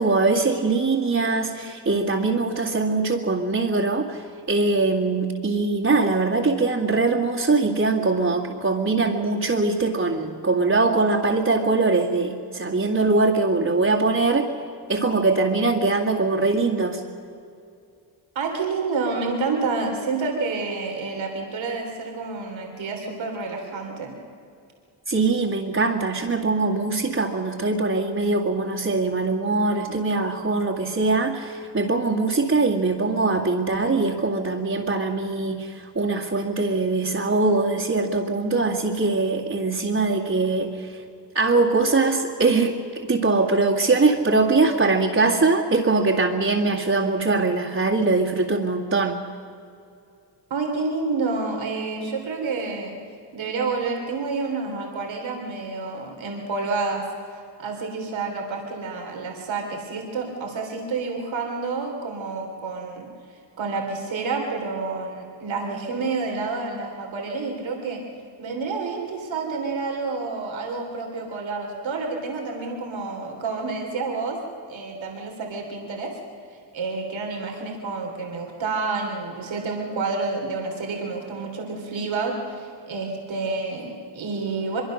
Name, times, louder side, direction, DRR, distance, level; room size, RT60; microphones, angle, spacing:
voice 1, 0.0-14.5 14.9-17.0 25.1-41.0 41.3-49.2, right 3 dB, 35° right, -6 dB, 2.3 m, -22 dB
voice 2, 18.4-24.1 50.5-53.0 53.3-57.1 57.6-63.1 63.6-68.0 68.4-74.4 74.7-76.1 76.7-84.8, right 4 dB, 85° right, 1 dB, 3.3 m, -29 dB
23.5 x 23.5 x 6.5 m, 2.5 s
cardioid pair, 90°, 45 cm